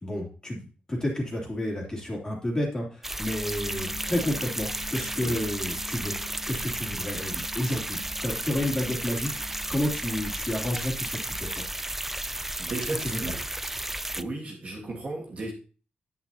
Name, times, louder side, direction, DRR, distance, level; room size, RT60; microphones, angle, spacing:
voice 1, 0.0-6.1 6.5-11.6 13.0-13.3, left 1 dB, 20° left, -2 dB, 2.9 m, -31 dB
sound 1, 3.0-14.2, right 1 dB, 10° right, 0.3 m, -33 dB
sound 2, 3.4-10.3, left 5 dB, 50° left, 1.0 m, -47 dB
voice 2, 12.6-13.4 14.1-15.5, right 2 dB, 40° right, -2 dB, 2.1 m, -34 dB
9.4 x 9.2 x 2.8 m, 0.37 s
wide cardioid pair, 155°, 3 cm